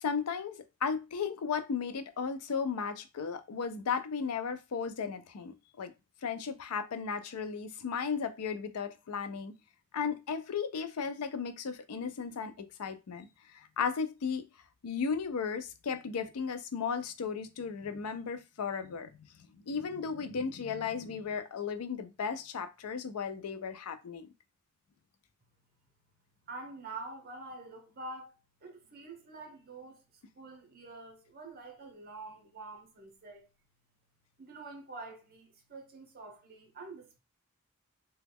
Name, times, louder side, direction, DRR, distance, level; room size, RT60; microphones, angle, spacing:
voice 1, 0.0-5.9 6.2-9.5 9.9-13.3 13.8-14.4 14.8-19.1 19.5-24.3, left 6 dB, 85° left, 0.5 m, -35 dB
voice 2, 26.5-28.3 28.6-33.5 34.4-37.2, right 3 dB, 45° right, 0.8 m, -46 dB
3.0 x 2.3 x 3.4 m
head